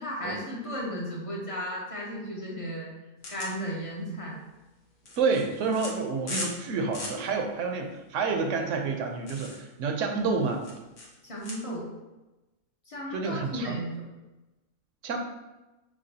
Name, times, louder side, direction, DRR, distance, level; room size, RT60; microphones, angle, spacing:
voice 1, 0.0-2.9 3.3-4.4 11.2-11.9 12.9-14.0, equal, 35° left, -3 dB, 0.6 m, -35 dB
sound 1, 3.2-11.5, left 2 dB, 70° left, 1.2 m, -41 dB
voice 2, 5.2-10.6 13.1-13.8 15.0-15.2, right 4 dB, 70° right, 3 dB, 0.9 m, -29 dB
5.9 x 2.3 x 2.7 m, 1.1 s
omnidirectional pair, 1.4 m